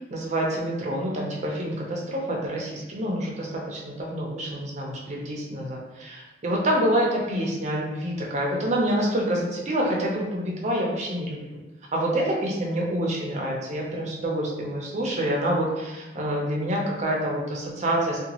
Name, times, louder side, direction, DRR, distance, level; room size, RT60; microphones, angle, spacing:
voice 1, 0.1-11.6 11.9-18.2, right 1 dB, 40° right, -2 dB, 0.6 m, -27 dB
2.8 x 2.3 x 2.9 m, 1.1 s
head